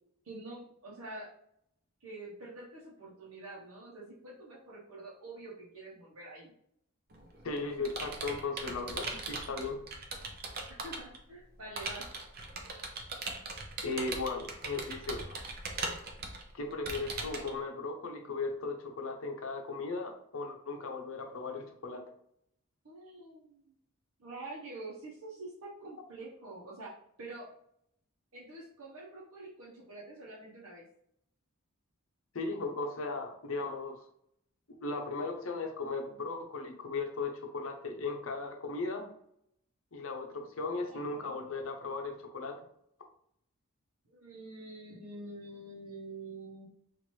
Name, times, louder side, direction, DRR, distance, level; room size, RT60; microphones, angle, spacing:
voice 1, 0.2-1.3 2.0-6.5 10.8-12.0 22.8-23.7 24.2-27.5 28.3-30.8 40.6-41.3 44.0-46.7, right 2 dB, 80° right, -5 dB, 0.9 m, -46 dB
Computer keyboard, 7.1-11.2 11.8-17.5, right 3 dB, 45° right, 0.6 m, -39 dB
voice 2, 7.4-9.8 13.8-15.4 16.5-22.0 32.3-34.0 34.8-39.1 39.9-42.6, left 3 dB, 65° left, 3 dB, 0.7 m, -37 dB
3.0 x 2.5 x 4.3 m, 0.71 s
head